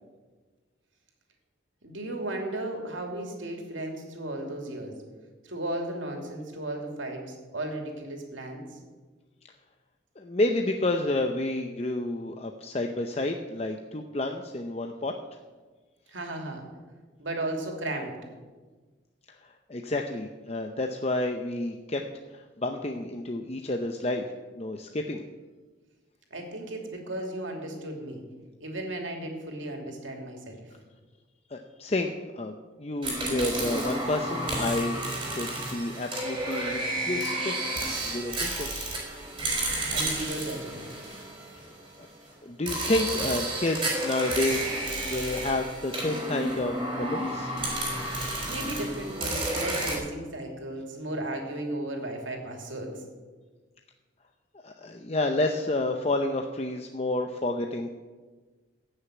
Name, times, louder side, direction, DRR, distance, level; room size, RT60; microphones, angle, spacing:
voice 1, 1.8-4.9 5.4-8.8 16.1-16.6 17.2-18.2 26.3-28.2 28.6-30.7 39.9-40.9 48.5-53.0, right 1 dB, 90° right, 2 dB, 2.9 m, -35 dB
voice 2, 10.2-15.1 19.3-22.0 22.3-24.3 24.5-25.2 31.5-35.0 35.4-36.8 37.1-37.5 38.1-38.9 42.0-42.1 42.4-47.5 54.6-57.9, left 2 dB, 35° left, 4 dB, 0.7 m, -30 dB
sound 1, 33.0-41.9 42.7-49.9, right 1 dB, 25° right, 4.4 m, -31 dB
15.5 x 6.6 x 9.1 m, 1.4 s
head